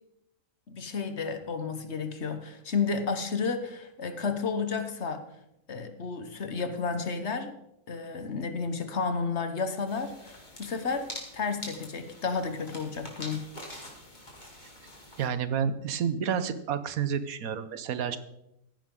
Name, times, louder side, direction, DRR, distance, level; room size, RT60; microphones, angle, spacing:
voice 1, 0.7-5.2 5.7-7.5 7.9-13.4, left 5 dB, 55° left, 8 dB, 1.4 m, -32 dB
sound 1, 9.9-15.3, left 1 dB, 30° left, 2.8 m, -45 dB
voice 2, 15.2-18.2, right 7 dB, 80° right, 12 dB, 1.3 m, -30 dB
15.5 x 10.0 x 3.8 m, 0.82 s
omnidirectional pair, 1.5 m